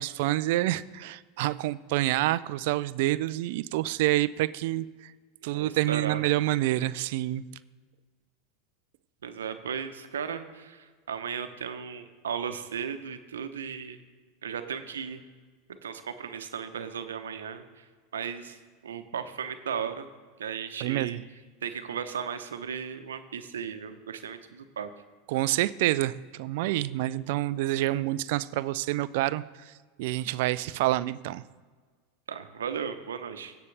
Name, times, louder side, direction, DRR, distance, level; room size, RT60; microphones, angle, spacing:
voice 1, 0.0-5.1 5.4-7.4 20.8-21.2 25.3-29.7 30.0-31.4, right 16 dB, 65° right, 17 dB, 0.4 m, -27 dB
voice 2, 5.4-6.2 9.2-14.0 14.4-15.2 15.8-17.8 18.1-18.6 18.8-20.1 20.4-21.2 21.6-24.9 32.3-33.5, right 7 dB, 90° right, 8 dB, 0.9 m, -36 dB
16.5 x 7.0 x 3.4 m, 1.5 s
hypercardioid pair, 100°, 0 cm